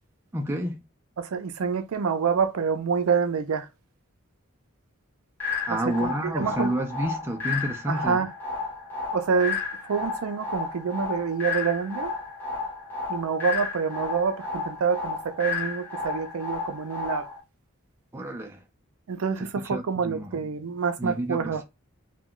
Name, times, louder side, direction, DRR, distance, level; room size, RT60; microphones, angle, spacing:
voice 1, 0.3-0.8 5.7-8.2 18.1-18.6 19.7-20.4 21.0-21.6, right 1 dB, 10° right, 0.3 m, -30 dB
voice 2, 1.2-3.7 5.7-6.7 7.9-8.3 9.1-12.1 13.1-17.3 19.1-21.6, right 5 dB, 80° right, 0.4 m, -27 dB
sound 1, 5.4-17.4, left 4 dB, 10° left, 0.8 m, -32 dB
2.2 x 2.2 x 3.7 m
head